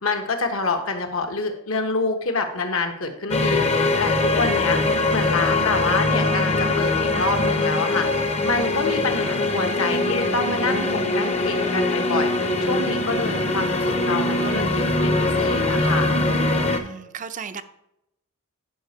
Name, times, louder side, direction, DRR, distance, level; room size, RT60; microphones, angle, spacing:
voice 1, 0.0-16.2, left 3 dB, 65° left, 5 dB, 1.2 m, -27 dB
sound 1, 3.3-16.8, left 2 dB, 30° left, 0.7 m, -22 dB
voice 2, 16.7-17.6, right 6 dB, 35° right, 12 dB, 0.5 m, -35 dB
10.0 x 5.0 x 4.6 m, 0.83 s
head